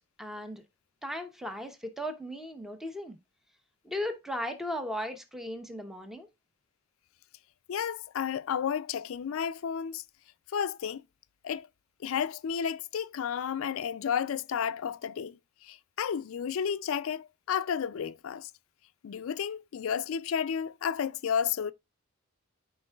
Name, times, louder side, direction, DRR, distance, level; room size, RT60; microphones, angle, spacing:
voice 1, 0.2-0.6 1.0-3.2 3.8-6.3, left 1 dB, ahead, 0.8 m, -36 dB
voice 2, 7.7-10.0 10.5-11.0 11.4-11.7 12.0-18.5 19.0-21.7, left 7 dB, 70° left, 0.4 m, -32 dB
13.5 x 4.5 x 2.3 m
head